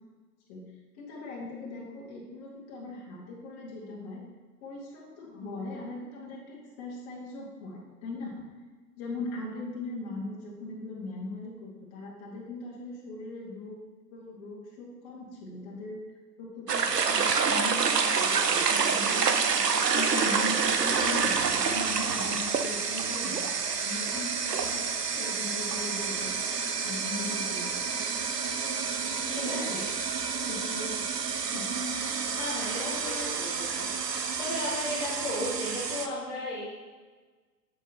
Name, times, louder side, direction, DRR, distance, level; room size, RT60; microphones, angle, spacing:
voice 1, 0.9-4.2 4.6-8.4 9.0-13.8 14.1-23.4 23.8-26.4 26.8-28.0 29.3-29.8 30.5-31.0 31.5-31.8 32.8-33.3, left 2 dB, 30° left, -3 dB, 2.0 m, -39 dB
sound 1, 16.7-36.1, right 5 dB, 80° right, 0.8 m, -28 dB
voice 2, 32.3-33.1 33.4-33.9 34.4-36.7, left 1 dB, 10° left, -10 dB, 1.4 m, -35 dB
8.1 x 7.6 x 3.0 m, 1.4 s
figure-of-eight pair, 115°, 48 cm